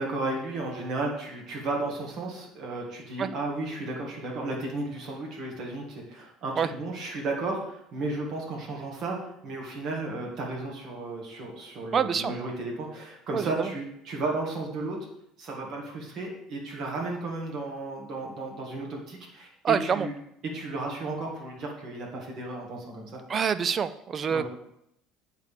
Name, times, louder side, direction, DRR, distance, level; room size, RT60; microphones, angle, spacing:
voice 1, 0.0-9.2 9.4-15.1 15.4-20.1 20.5-23.2 24.3-24.4, right 2 dB, 45° right, 0 dB, 2.0 m, -34 dB
voice 2, 11.9-12.3 13.3-13.7 19.6-20.1 23.3-24.4, right 7 dB, 25° right, 14 dB, 0.3 m, -26 dB
8.1 x 3.7 x 6.5 m, 0.77 s
cardioid pair, 160°, 0 cm